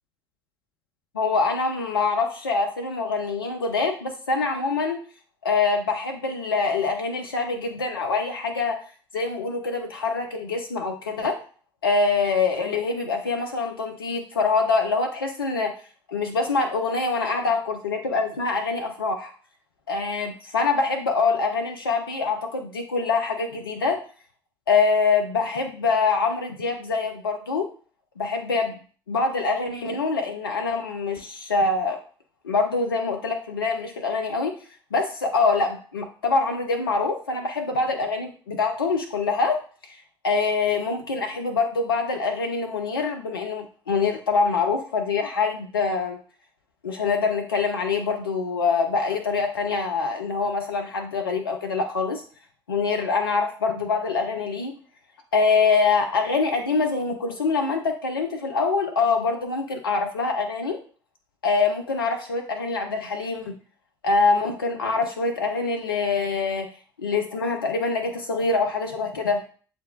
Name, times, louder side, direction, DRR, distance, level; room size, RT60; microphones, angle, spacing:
voice 1, 1.1-5.0 5.4-8.8 9.1-11.4 11.8-15.7 16.1-19.3 19.9-24.0 24.7-27.7 28.2-28.8 29.1-32.0 32.4-34.6 34.9-40.0 40.2-46.2 46.8-52.2 52.7-54.8 55.3-60.8 61.4-63.5 64.0-66.7 67.0-69.5, left 4 dB, 85° left, 3 dB, 0.4 m, -24 dB
7.4 x 2.5 x 2.3 m, 0.41 s
figure-of-eight pair, 50°, 12 cm